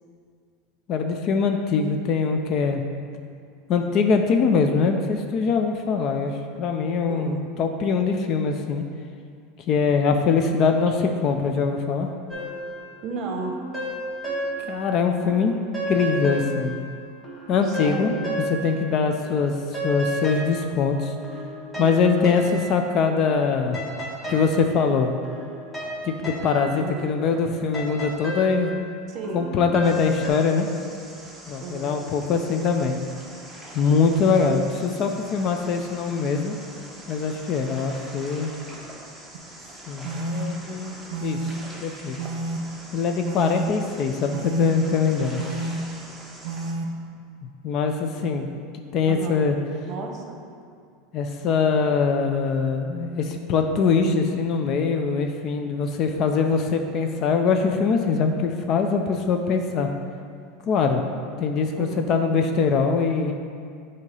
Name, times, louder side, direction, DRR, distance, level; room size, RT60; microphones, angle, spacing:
voice 1, 0.9-2.8 3.7-8.8 9.7-12.1 14.7-15.6 15.9-16.7 17.5-18.1 18.5-21.1 21.8-23.8 24.3-25.1 26.0-28.7 29.3-30.7 31.5-33.0 33.7-36.5 37.1-38.5 39.9-40.9 41.2-41.5 41.8-42.2 42.9-45.4 47.6-48.5 48.7-49.6 51.1-59.9 60.6-61.0 61.4-63.3, left 5 dB, 45° left, 5 dB, 0.4 m, -23 dB
voice 2, 7.1-7.5 13.0-13.5 17.6-18.3 21.7-22.1 26.8-27.1 29.1-29.4 31.6-32.0 49.1-49.4 49.8-50.4 58.9-59.2 61.8-62.1, right 4 dB, 40° right, 2 dB, 0.9 m, -34 dB
sound 1, 12.3-14.9 15.2-19.0 19.2-30.3, equal, 10° left, 1.2 m, -33 dB
sound 2, 29.8-46.7, right 1 dB, 5° right, 0.9 m, -43 dB
sound 3, 39.3-39.4 40.0-40.4 41.1-41.5 42.2-42.6 43.2-43.6 44.3-44.7 45.4-45.8 46.4-46.8, right 3 dB, 75° right, 0.5 m, -30 dB
7.8 x 2.8 x 5.4 m, 2.3 s
supercardioid pair, 135°, 0 cm